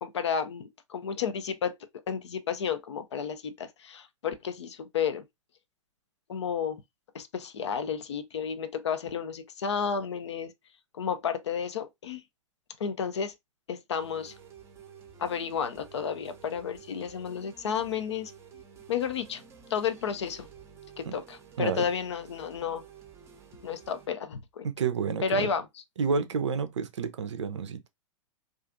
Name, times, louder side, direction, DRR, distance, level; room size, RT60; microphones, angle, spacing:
voice 1, 0.0-1.7 2.1-5.2 6.3-6.8 7.1-10.5 10.9-12.2 12.8-13.3 13.7-14.3 15.2-18.3 18.9-19.4 19.7-20.5 21.0-22.8 23.6-24.7 25.2-25.7, left 7 dB, 60° left, 0.4 m, -32 dB
sound 1, 14.0-24.1, right 7 dB, 15° right, 0.6 m, -52 dB
voice 2, 24.6-25.5 26.0-27.9, right 5 dB, 65° right, 0.4 m, -30 dB
2.4 x 2.3 x 2.5 m
figure-of-eight pair, 100°, 17 cm